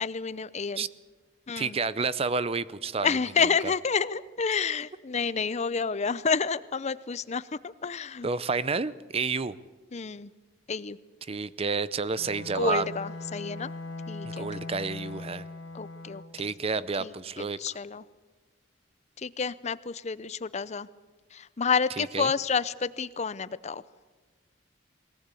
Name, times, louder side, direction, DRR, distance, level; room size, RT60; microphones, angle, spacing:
voice 1, 0.0-0.9 1.5-1.8 3.0-8.3 9.9-10.3 10.7-11.0 12.5-13.7 14.1-14.5 15.7-16.2 17.0-18.0 19.2-20.9 21.3-23.8, left 5 dB, 35° left, 17 dB, 0.6 m, -29 dB
voice 2, 1.6-3.1 8.2-9.5 11.3-12.8 14.2-15.4 16.3-17.6 22.0-22.3, right 4 dB, 30° right, 17 dB, 0.6 m, -30 dB
Bowed string instrument, 12.1-16.5, left 2 dB, 80° left, 1.6 m, -40 dB
21.0 x 18.5 x 8.3 m, 1.4 s
head